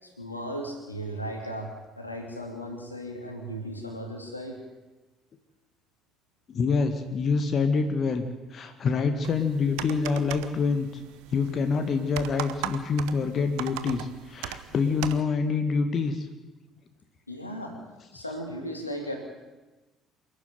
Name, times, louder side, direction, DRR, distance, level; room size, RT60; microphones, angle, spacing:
voice 1, 0.0-4.6 17.3-17.8 18.1-19.2, equal, 90° left, 2 dB, 3.0 m, -36 dB
voice 2, 6.5-11.0 11.3-16.3, left 5 dB, 40° left, 8 dB, 2.0 m, -26 dB
sound 1, 9.2-15.2, right 13 dB, 65° right, 1.0 m, -39 dB
27.0 x 12.0 x 9.4 m, 1.1 s
figure-of-eight pair, 55°, 0 cm